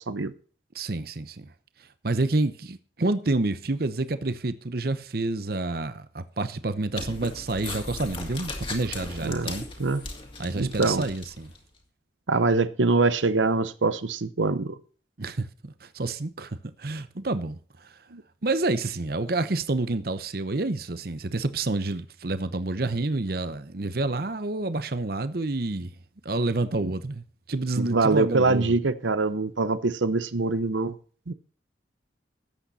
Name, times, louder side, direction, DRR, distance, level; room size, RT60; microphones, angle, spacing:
voice 1, 0.7-1.5 2.0-9.7 10.4-11.5 15.2-17.9 18.4-25.9 26.2-28.7, right 2 dB, 55° right, 0.8 m, -28 dB
sound 1, 6.9-11.6, left 3 dB, 30° left, 2.4 m, -37 dB
voice 2, 10.6-11.1 12.3-14.8 18.1-18.2 26.8-26.9 27.8-30.9 31.3-31.4, right 3 dB, 90° right, 0.8 m, -24 dB
13.5 x 8.8 x 4.2 m
head